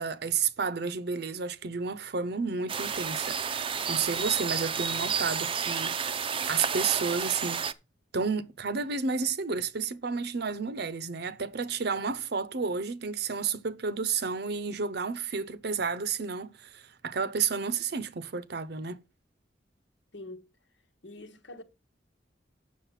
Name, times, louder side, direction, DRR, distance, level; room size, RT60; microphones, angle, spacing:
voice 1, 0.0-5.9 6.5-7.6 8.1-19.0, right 5 dB, 65° right, 0.7 m, -31 dB
sound 1, 2.7-7.7, right 6 dB, 30° right, 0.5 m, -31 dB
voice 2, 20.1-20.5 21.0-21.6, left 2 dB, 85° left, 1.3 m, -44 dB
7.3 x 6.4 x 5.8 m
head